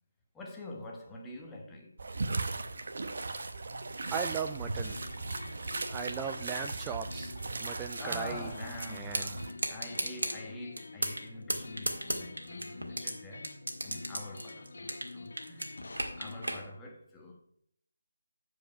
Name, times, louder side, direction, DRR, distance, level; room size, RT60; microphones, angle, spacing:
voice 1, 0.3-2.1 7.8-15.7 16.0-17.4, left 2 dB, 10° left, 1.2 m, -45 dB
sound 1, 2.0-9.5, right 3 dB, 55° right, 0.8 m, -37 dB
voice 2, 4.1-5.0 5.9-7.3 7.6-8.5 8.9-9.3, right 7 dB, 10° right, 0.3 m, -37 dB
sound 2, 4.5-16.6, left 3 dB, 60° left, 1.0 m, -47 dB
sound 3, 9.1-9.3 9.6-10.3 10.8-11.2 11.5-13.1 13.4-15.1 15.4-16.6, right 1 dB, 75° right, 1.7 m, -33 dB
8.8 x 4.8 x 5.7 m
figure-of-eight pair, 155°, 0 cm